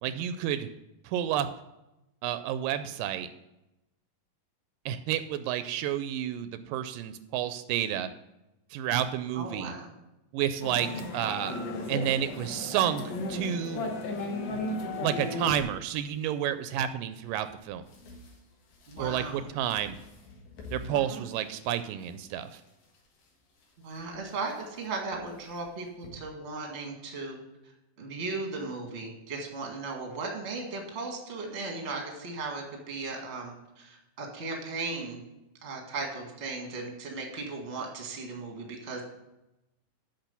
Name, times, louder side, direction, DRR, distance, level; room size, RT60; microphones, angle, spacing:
voice 1, 0.0-0.7 1.0-1.5 2.2-3.3 4.9-8.1 8.7-9.7 10.3-11.5 11.9-13.0 13.3-13.9 15.0-17.8 19.0-20.0 20.7-22.6, right 10 dB, 85° right, 11 dB, 2.2 m, -30 dB
voice 2, 9.3-9.9 10.9-11.0 18.9-19.4 20.9-21.3 23.8-27.4 28.0-35.2 35.6-39.0, right 3 dB, 30° right, 1 dB, 1.3 m, -37 dB
sound 1, 10.6-15.6, left 2 dB, 65° left, 1.1 m, -34 dB
sound 2, 15.4-26.1, left 2 dB, 90° left, 3.4 m, -51 dB
8.8 x 5.8 x 6.9 m, 0.93 s
omnidirectional pair, 4.0 m